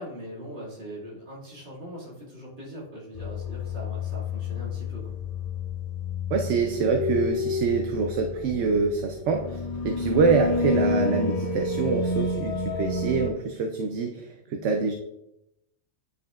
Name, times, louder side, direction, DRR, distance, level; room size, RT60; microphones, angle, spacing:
voice 1, 0.0-5.2, equal, 50° right, -5 dB, 2.3 m, -41 dB
sound 1, 3.1-13.3, left 3 dB, 55° left, 0.4 m, -29 dB
voice 2, 6.3-14.9, right 5 dB, 70° right, 4 dB, 0.9 m, -25 dB
9.0 x 5.5 x 2.3 m, 0.84 s
omnidirectional pair, 1.3 m